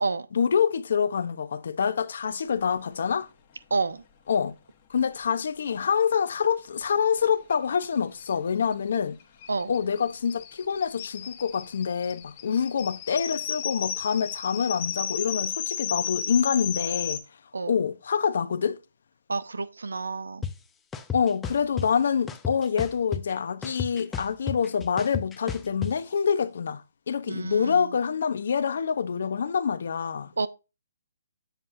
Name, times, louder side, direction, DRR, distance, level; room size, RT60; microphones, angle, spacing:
voice 1, 0.3-3.3 4.3-4.5 4.9-9.2 9.7-17.2 17.7-18.8 21.1-30.3, left 7 dB, 65° left, 0.8 m, -26 dB
voice 2, 3.7-4.0 9.5-9.7 17.5-17.8 19.3-20.5 27.3-28.0 30.4-30.5, right 3 dB, 90° right, 0.8 m, -29 dB
sound 1, 7.5-7.6 7.8-7.9 8.2-17.2, left 9 dB, 30° left, 1.2 m, -34 dB
sound 2, 20.4-20.5 20.9-21.9 22.3-23.3 23.6-25.9, left 6 dB, 10° left, 0.6 m, -33 dB
7.4 x 7.1 x 2.7 m
hypercardioid pair, 150°, 0 cm